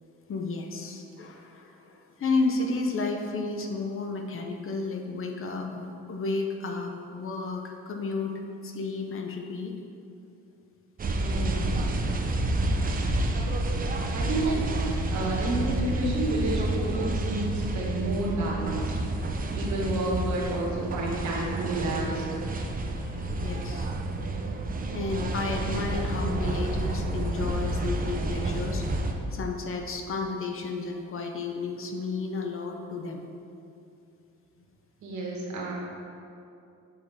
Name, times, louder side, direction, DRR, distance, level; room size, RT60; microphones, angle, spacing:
voice 1, 0.3-8.3 8.6-9.7 22.6-24.1 24.9-28.9 29.3-33.3, left 3 dB, 45° left, 3 dB, 0.7 m, -32 dB
sound 1, 11.0-29.1, right 2 dB, 30° right, 0.6 m, -29 dB
voice 2, 11.1-11.8 14.1-18.9 19.3-22.3 35.0-35.7, right 2 dB, 70° right, -3 dB, 1.5 m, -30 dB
6.5 x 4.7 x 3.5 m, 2.6 s
cardioid pair, 90°, 30 cm